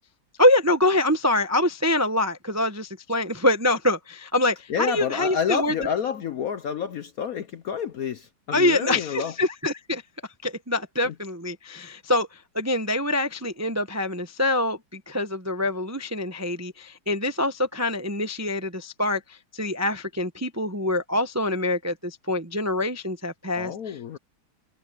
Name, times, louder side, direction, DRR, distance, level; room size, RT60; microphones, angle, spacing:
voice 1, 0.4-5.9 8.5-10.0 10.4-24.2, left 1 dB, 20° right, 0.5 m, -25 dB
voice 2, 4.7-9.3 11.0-11.1 23.6-24.2, left 8 dB, 65° left, 0.9 m, -29 dB
omnidirectional pair, 2.2 m